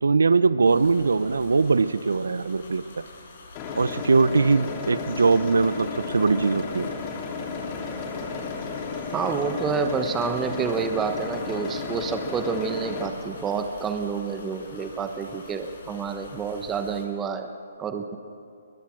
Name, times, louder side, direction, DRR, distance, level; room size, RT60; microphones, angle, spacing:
voice 1, 0.0-3.0 3.8-6.9, right 4 dB, 85° right, 16 dB, 0.7 m, -21 dB
sound 1, 0.7-17.0, left 2 dB, 60° left, 7.4 m, -46 dB
sound 2, 3.6-13.1, left 4 dB, 30° left, 2.8 m, -33 dB
voice 2, 9.1-17.5 17.8-18.2, right 5 dB, 15° right, 7 dB, 1.0 m, -28 dB
21.5 x 21.5 x 6.2 m, 2.5 s
hypercardioid pair, 140°, 0 cm